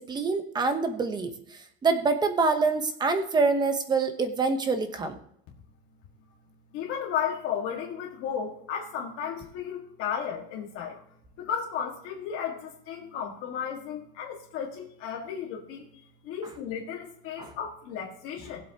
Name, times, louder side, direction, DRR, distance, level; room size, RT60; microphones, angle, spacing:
voice 1, 0.1-1.3 1.8-5.2 17.4-17.5, right 4 dB, 15° right, 8 dB, 0.9 m, -25 dB
voice 2, 6.7-11.0 11.4-15.9 16.2-18.7, left 8 dB, 45° left, -1 dB, 1.9 m, -34 dB
19.5 x 7.8 x 2.9 m, 0.72 s
cardioid pair, 170°, 31 cm